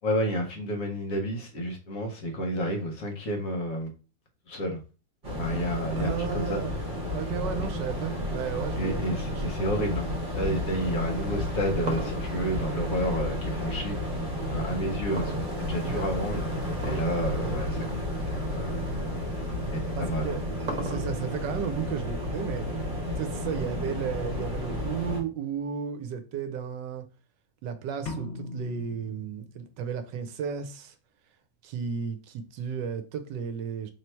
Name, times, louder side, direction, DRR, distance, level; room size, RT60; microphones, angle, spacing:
voice 1, 0.0-3.9 4.5-4.8 5.4-6.6 7.6-7.7 8.7-14.0 14.5-15.3 15.6-18.7 19.7-20.4, equal, 55° left, 1.1 m, -30 dB
sound 1, 5.2-25.2, left 1 dB, 30° right, 1.3 m, -32 dB
voice 2, 5.9-6.8 7.1-9.5 15.8-16.0 20.0-20.4 20.8-22.7 23.2-27.0 27.6-30.9 31.6-33.9, right 7 dB, 75° right, 1.2 m, -34 dB
sound 2, 11.9-13.8 15.2-16.0 16.8-17.2 17.5-17.6 18.4-18.5 19.9-21.4, right 2 dB, 55° right, 1.3 m, -36 dB
sound 3, 28.1-29.9, left 3 dB, 80° left, 0.6 m, -40 dB
3.2 x 3.0 x 4.3 m
omnidirectional pair, 2.0 m